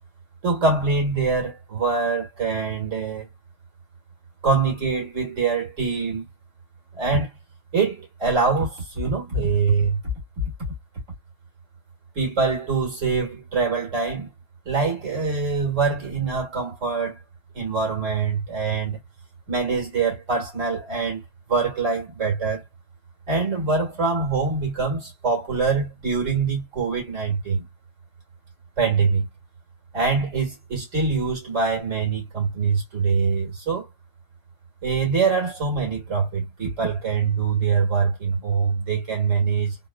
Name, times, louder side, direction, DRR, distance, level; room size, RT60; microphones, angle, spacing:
voice 1, 0.4-3.3 4.4-6.2 6.9-7.3 7.7-10.0 10.4-10.5 12.2-14.3 14.7-17.2 17.5-19.0 19.5-21.2 21.5-22.6 23.3-27.7 28.8-29.3 29.9-33.9 34.8-39.8, right 4 dB, 80° right, 2.0 m, -24 dB
3.5 x 2.2 x 2.2 m
omnidirectional pair, 1.3 m